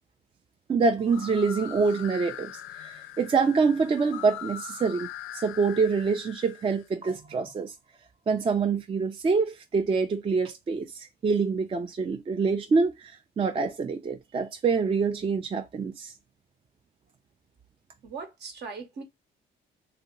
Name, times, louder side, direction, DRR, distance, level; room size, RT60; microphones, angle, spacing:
voice 1, 0.7-5.1 5.3-7.7 8.3-16.1, right 4 dB, 30° right, 0.4 m, -26 dB
sound 1, 1.0-6.8, left 11 dB, 90° left, 0.4 m, -42 dB
voice 2, 18.0-19.0, right 5 dB, 55° right, 1.0 m, -39 dB
2.7 x 2.0 x 3.8 m
cardioid pair, 90°, 20 cm